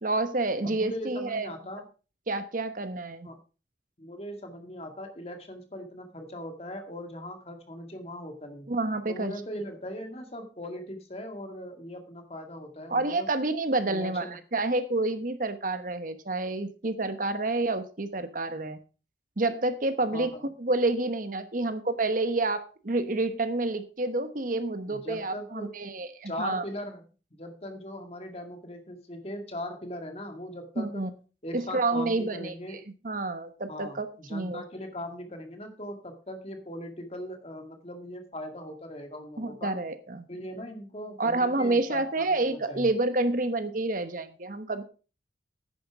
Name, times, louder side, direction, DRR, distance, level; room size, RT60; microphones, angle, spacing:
voice 1, 0.0-1.5 2.3-3.3 8.7-9.3 12.9-18.8 19.4-20.3 20.6-26.6 30.8-31.1 31.5-32.5 33.0-34.6 39.4-40.2 41.2-44.8, right 2 dB, 45° right, 10 dB, 1.1 m, -29 dB
voice 2, 0.6-1.8 3.2-3.4 4.0-8.7 9.1-13.3 13.9-14.4 20.1-20.4 24.9-25.7 26.3-27.0 27.3-31.1 31.4-32.8 33.7-39.7 40.3-42.9, left 1 dB, 35° left, 5 dB, 2.1 m, -39 dB
10.5 x 9.5 x 4.8 m, 0.35 s
head